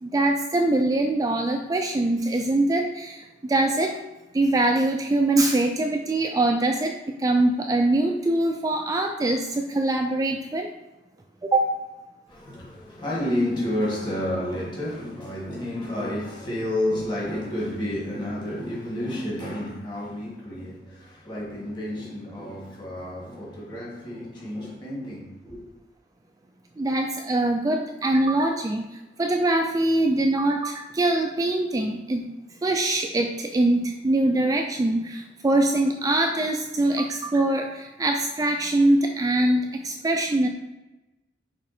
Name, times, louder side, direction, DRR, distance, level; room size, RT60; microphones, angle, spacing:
voice 1, 0.0-4.0 4.3-6.9 7.2-10.7 11.4-11.7 26.8-28.9 29.2-32.3 32.6-40.5, right 2 dB, 20° right, 0.3 m, -23 dB
voice 2, 12.3-25.6, left 1 dB, 25° left, 2.0 m, -30 dB
6.2 x 3.6 x 4.3 m
head